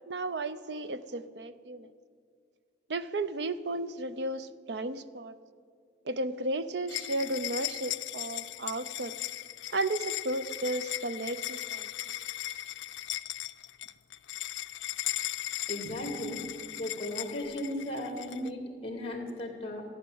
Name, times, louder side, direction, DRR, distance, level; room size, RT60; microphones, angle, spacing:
voice 1, 0.0-1.9 2.9-5.4 6.0-9.1 9.7-11.9, right 2 dB, 70° right, 14 dB, 0.6 m, -34 dB
sound 1, 6.9-18.5, left 14 dB, 85° left, 0.4 m, -37 dB
voice 2, 15.7-16.5 16.8-19.8, left 1 dB, 30° left, 3 dB, 2.4 m, -36 dB
14.5 x 10.0 x 7.8 m, 2.2 s
head